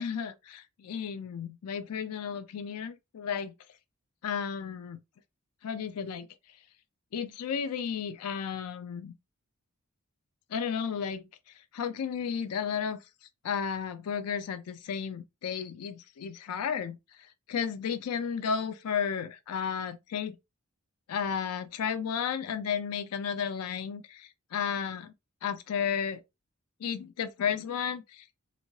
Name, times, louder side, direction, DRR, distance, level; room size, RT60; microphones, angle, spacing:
voice 1, 0.0-3.5 4.2-5.0 5.6-6.3 7.1-9.1 10.5-11.3 11.7-13.0 13.4-20.4 21.1-25.1 25.4-26.2 26.8-28.3, left 7 dB, 85° left, 0.4 m, -33 dB
2.6 x 2.5 x 3.0 m
head